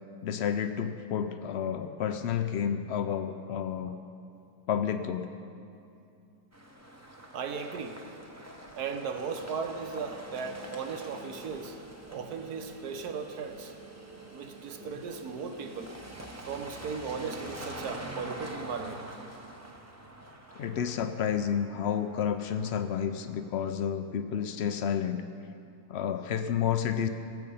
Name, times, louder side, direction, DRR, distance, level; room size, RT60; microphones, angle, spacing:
voice 1, 0.2-3.9 4.7-5.3 20.5-25.2 25.9-27.1, left 8 dB, 75° left, 9 dB, 0.6 m, -30 dB
sound 1, 6.5-23.5, right 1 dB, 15° right, 0.6 m, -46 dB
voice 2, 7.3-8.0 8.7-11.8 12.1-13.7 14.3-15.9 16.4-19.0, right 5 dB, 70° right, 6 dB, 1.4 m, -37 dB
17.5 x 7.8 x 5.5 m, 2.6 s
omnidirectional pair, 1.7 m